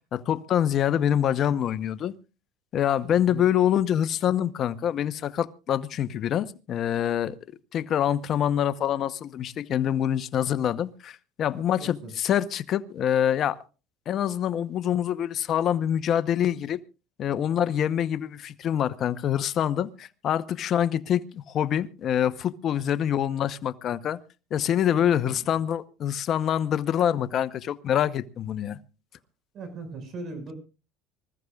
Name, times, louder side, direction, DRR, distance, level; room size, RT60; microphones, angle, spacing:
voice 1, 0.1-2.1 2.7-7.4 7.7-13.6 14.1-16.8 17.2-24.2 24.5-28.8, left 10 dB, 45° left, 0.9 m, -25 dB
voice 2, 11.8-12.1 25.0-25.3 29.5-30.5, right 3 dB, 45° right, 5.7 m, -38 dB
25.5 x 14.5 x 2.4 m
supercardioid pair, 120°, 0 cm